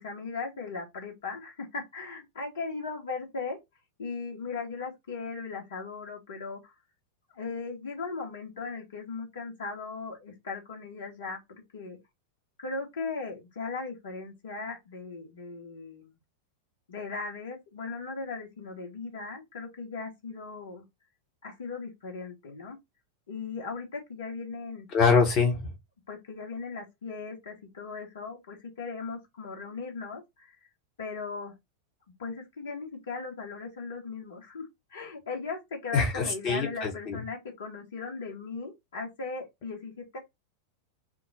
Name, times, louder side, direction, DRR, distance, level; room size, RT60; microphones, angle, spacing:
voice 1, 0.0-3.6 4.0-6.6 7.3-12.0 12.6-16.1 16.9-20.8 21.4-22.8 23.3-24.9 26.1-30.5 31.0-31.5 32.2-40.2, left 4 dB, 60° left, 1.2 m, -38 dB
voice 2, 24.9-25.7 35.9-37.2, left 5 dB, 35° left, 0.9 m, -24 dB
3.5 x 2.0 x 4.1 m
figure-of-eight pair, 90°, 0 cm